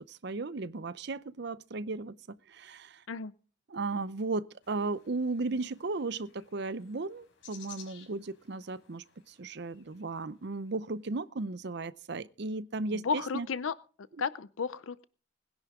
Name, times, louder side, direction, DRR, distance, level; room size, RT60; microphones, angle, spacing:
voice 1, 0.0-3.0 3.7-13.5, right 3 dB, 55° right, 0.6 m, -35 dB
sound 1, 4.6-10.8, left 8 dB, 70° left, 4.8 m, -57 dB
voice 2, 12.9-13.7 14.2-15.0, left 5 dB, 85° left, 0.6 m, -33 dB
20.5 x 10.5 x 3.7 m
head